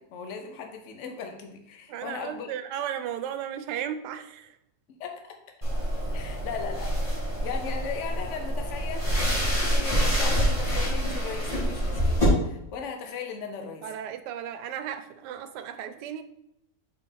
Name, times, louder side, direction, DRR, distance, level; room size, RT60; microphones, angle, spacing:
voice 1, 0.0-2.5 5.0-5.4 6.1-13.9, left 6 dB, 55° left, 4 dB, 1.0 m, -38 dB
voice 2, 1.9-4.6 13.8-16.2, right 9 dB, 85° right, 10 dB, 1.2 m, -35 dB
sound 1, 5.6-12.2, equal, 20° left, 2.5 m, -27 dB
5.7 x 4.4 x 4.1 m, 0.82 s
omnidirectional pair, 1.8 m